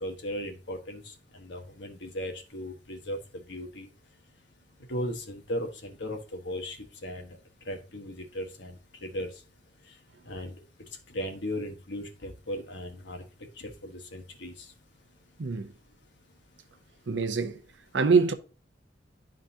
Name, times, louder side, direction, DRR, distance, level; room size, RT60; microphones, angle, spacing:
voice 1, 0.0-1.0 1.3-3.2 3.5-3.9 4.9-7.4 7.7-9.3 10.3-10.5 11.1-13.2 13.6-14.7, equal, 70° left, 1.1 m, -37 dB
voice 2, 15.4-15.7 17.1-17.6 17.9-18.3, right 4 dB, 80° right, 0.7 m, -24 dB
11.5 x 3.8 x 2.7 m
head